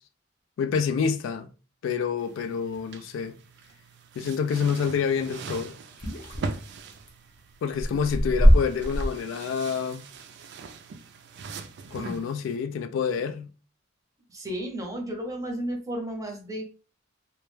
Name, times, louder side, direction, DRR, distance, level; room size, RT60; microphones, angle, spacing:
voice 1, 0.6-1.5 1.8-3.4 4.2-5.7 7.6-10.0 11.9-13.5, left 6 dB, 75° left, 0.3 m, -28 dB
sound 1, 2.2-12.6, right 4 dB, 60° right, 0.3 m, -42 dB
sound 2, 6.0-7.1 7.7-9.1, equal, 45° left, 0.6 m, -21 dB
voice 2, 14.3-16.6, right 1 dB, 15° right, 0.6 m, -33 dB
2.2 x 2.1 x 3.0 m
head